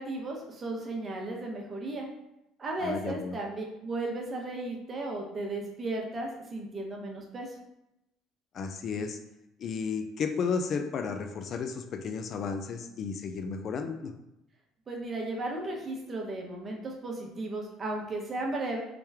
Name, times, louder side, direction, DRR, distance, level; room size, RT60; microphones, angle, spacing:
voice 1, 0.0-2.1 2.6-7.6 14.9-18.8, right 2 dB, 35° right, 0 dB, 0.9 m, -35 dB
voice 2, 2.8-3.4 8.5-9.2 9.6-14.1, left 5 dB, 50° left, 6 dB, 0.3 m, -33 dB
3.4 x 3.0 x 3.4 m, 0.88 s
supercardioid pair, 100°, 0 cm